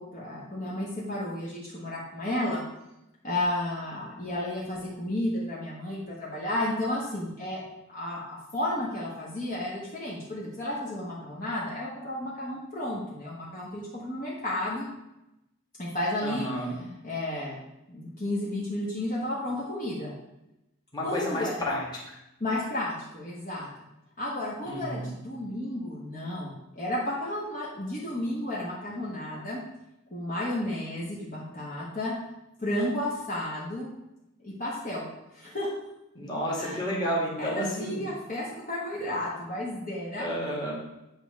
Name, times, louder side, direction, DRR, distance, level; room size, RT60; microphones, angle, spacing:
voice 1, 0.0-2.6 3.2-7.6 7.9-14.9 15.8-16.5 17.0-17.6 17.9-20.1 21.0-21.6 22.4-23.7 24.2-29.6 30.1-32.1 32.6-33.9 34.4-35.0 35.3-35.7 36.6-36.8 37.4-40.3, left 1 dB, 40° left, -6 dB, 1.4 m, -32 dB
voice 2, 16.2-16.8 20.9-22.2 24.6-25.2 36.1-38.0 40.2-40.7, equal, 20° left, -4 dB, 2.0 m, -31 dB
8.9 x 3.5 x 6.4 m, 0.92 s
head